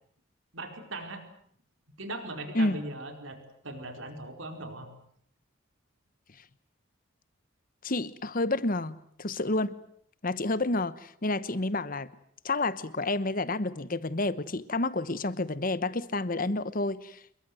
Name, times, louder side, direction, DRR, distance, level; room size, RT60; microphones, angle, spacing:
voice 1, 0.5-1.2 2.0-4.9, right 2 dB, 70° right, 4.6 m, -39 dB
voice 2, 7.8-9.8 10.2-12.1 12.4-17.2, left 2 dB, 40° left, 1.1 m, -29 dB
27.0 x 22.5 x 7.8 m
head